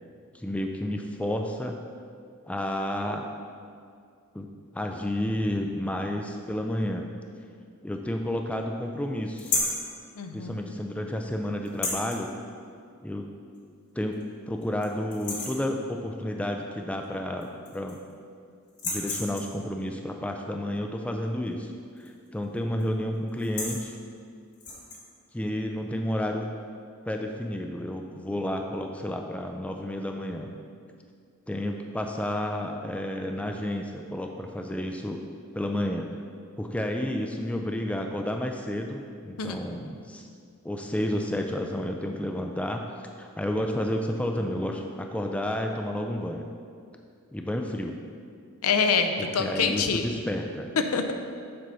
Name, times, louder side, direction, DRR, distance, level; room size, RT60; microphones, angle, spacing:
voice 1, 0.3-1.8 2.5-3.3 4.3-4.5 4.7-7.1 7.8-9.7 10.3-12.3 13.0-13.3 13.9-18.0 18.8-21.7 22.0-24.0 25.3-26.5 27.1-30.5 31.5-35.2 35.5-36.1 36.6-40.3 40.6-42.8 43.2-46.5 47.3-48.0 49.4-50.7, left 1 dB, 5° left, 3 dB, 0.3 m, -31 dB
sound 1, 9.4-9.8 11.7-12.2 13.6-13.7 14.1-14.2 14.6-14.9 15.1-15.7 17.0-17.1 17.4-18.1 18.7-19.6 22.0-22.3 22.6-22.8 23.3-23.9 24.5-25.0, left 2 dB, 35° left, 1.3 m, -32 dB
voice 2, 10.2-10.7 39.4-39.6 48.6-50.0 50.9-51.1, left 5 dB, 75° left, 6 dB, 0.6 m, -26 dB
7.7 x 4.0 x 5.5 m, 2.2 s
head